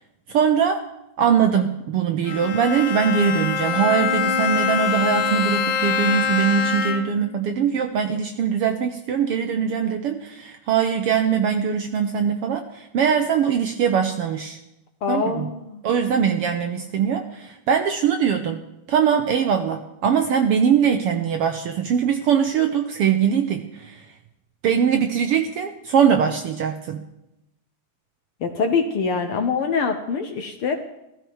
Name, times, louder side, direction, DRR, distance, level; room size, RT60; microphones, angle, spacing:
voice 1, 0.3-0.8 1.2-14.6 15.1-15.5 15.8-18.6 18.9-24.0 24.6-27.0, right 7 dB, 70° right, 6 dB, 1.4 m, -21 dB
Bowed string instrument, 2.2-7.3, left 6 dB, 85° left, 2.6 m, -24 dB
voice 2, 15.0-15.8 28.4-30.8, left 5 dB, 65° left, 6 dB, 1.5 m, -24 dB
15.0 x 14.5 x 4.7 m, 0.89 s
omnidirectional pair, 3.3 m